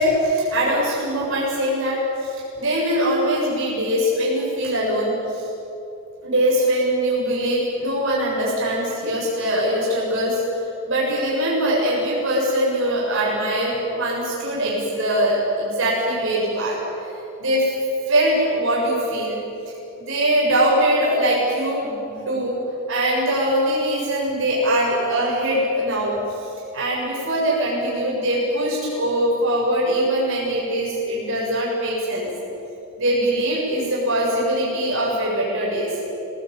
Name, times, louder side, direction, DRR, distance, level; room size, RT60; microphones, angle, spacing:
voice 1, 0.0-5.5 6.2-10.4 10.9-16.8 17.4-17.7 18.1-19.4 20.0-22.6 22.9-26.5 26.7-32.3 33.0-35.9, right 1 dB, 60° right, -4 dB, 7.4 m, -22 dB
27.0 x 20.0 x 9.0 m, 2.8 s
head